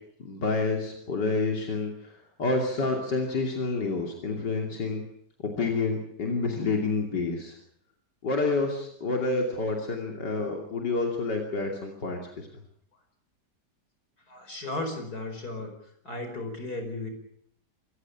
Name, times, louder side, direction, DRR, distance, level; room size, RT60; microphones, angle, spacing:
voice 1, 0.2-5.0 5.4-7.6 8.2-12.5, left 3 dB, 90° left, 2 dB, 3.5 m, -29 dB
voice 2, 14.3-15.7 16.0-17.1, left 2 dB, 65° left, 6 dB, 5.5 m, -35 dB
27.0 x 15.0 x 8.5 m, 0.66 s
omnidirectional pair, 1.8 m